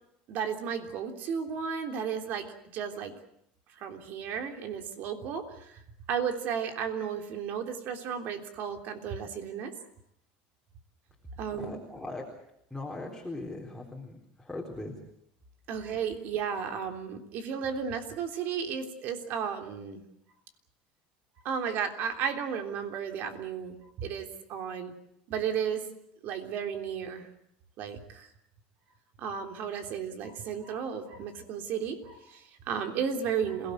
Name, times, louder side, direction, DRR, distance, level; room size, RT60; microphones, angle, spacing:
voice 1, 0.3-3.2 3.7-5.8 6.1-9.7 11.4-11.8 15.7-20.0 21.4-24.9 25.3-25.8 26.2-27.3 27.8-28.3 29.2-33.7, right 7 dB, 55° right, 5 dB, 3.4 m, -34 dB
voice 2, 11.6-12.2 12.7-14.9, left 2 dB, 5° left, -2 dB, 4.0 m, -39 dB
27.5 x 18.0 x 7.9 m, 0.75 s
supercardioid pair, 120°, 4 cm